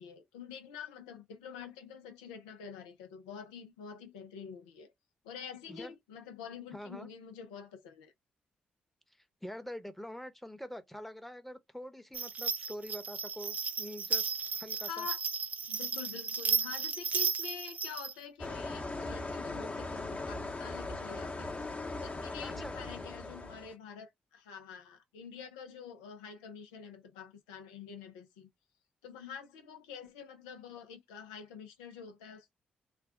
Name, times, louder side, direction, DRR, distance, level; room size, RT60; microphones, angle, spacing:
voice 1, 0.0-4.9 5.2-8.1 14.8-15.2 15.7-21.6 22.0-28.5 29.0-32.5, left 7 dB, 90° left, 0.5 m, -47 dB
voice 2, 6.7-7.1 9.4-15.1 22.4-22.7, equal, 5° left, 0.9 m, -45 dB
sound 1, 12.1-18.1, right 5 dB, 45° right, 0.5 m, -34 dB
sound 2, 18.4-23.7, left 2 dB, 35° left, 1.0 m, -39 dB
3.4 x 2.3 x 3.5 m
hypercardioid pair, 45°, 4 cm